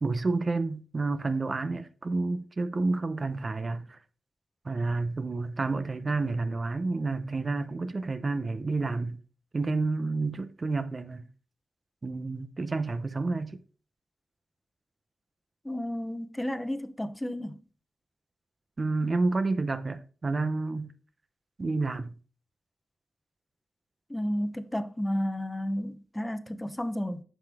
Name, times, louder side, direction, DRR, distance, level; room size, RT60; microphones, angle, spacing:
voice 1, 0.0-4.0 4.6-9.2 9.5-11.2 12.0-13.6 18.8-20.9 21.6-22.2, right 3 dB, 40° right, 0.7 m, -30 dB
voice 2, 15.6-17.6 24.1-27.2, equal, 10° left, 0.9 m, -32 dB
8.2 x 5.6 x 3.5 m
cardioid pair, 70°, 0 cm